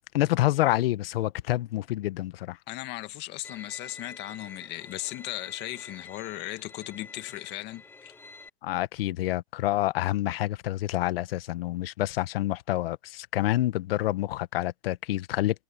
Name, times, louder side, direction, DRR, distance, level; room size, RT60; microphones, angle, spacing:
voice 1, 0.1-2.6 8.6-15.6, left 15 dB, 60° left, 1.3 m, -27 dB
voice 2, 2.7-8.1, left 18 dB, 30° left, 1.8 m, -37 dB
Bowed string instrument, 3.4-8.5, left 3 dB, 5° left, 1.2 m, -47 dB
hypercardioid pair, 145°, 33 cm